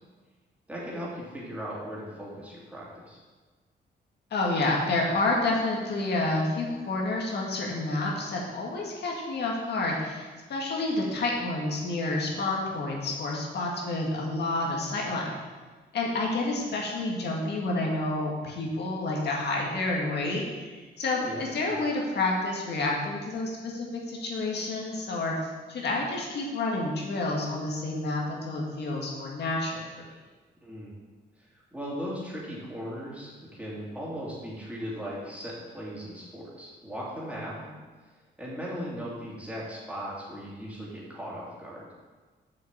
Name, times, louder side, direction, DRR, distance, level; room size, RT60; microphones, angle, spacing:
voice 1, 0.7-3.2 21.2-21.8 30.6-31.0 31.4-37.5 38.4-41.9, equal, 5° right, -6 dB, 2.8 m, -38 dB
voice 2, 4.3-15.4 15.9-20.7 21.0-30.0, left 2 dB, 65° left, -2 dB, 1.9 m, -29 dB
7.3 x 5.6 x 7.2 m, 1.4 s
wide cardioid pair, 150°, 19 cm